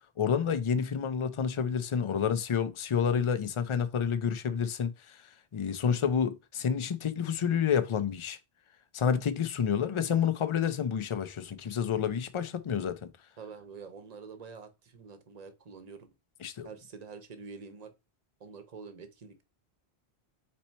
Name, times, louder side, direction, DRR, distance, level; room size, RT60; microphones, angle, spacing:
voice 1, 0.2-5.2 5.5-8.4 8.9-13.1 16.4-16.7, left 7 dB, 50° left, 0.3 m, -29 dB
voice 2, 13.4-16.1 16.6-17.9 18.4-19.4, right 5 dB, 40° right, 0.8 m, -46 dB
4.3 x 2.8 x 4.3 m
omnidirectional pair, 1.1 m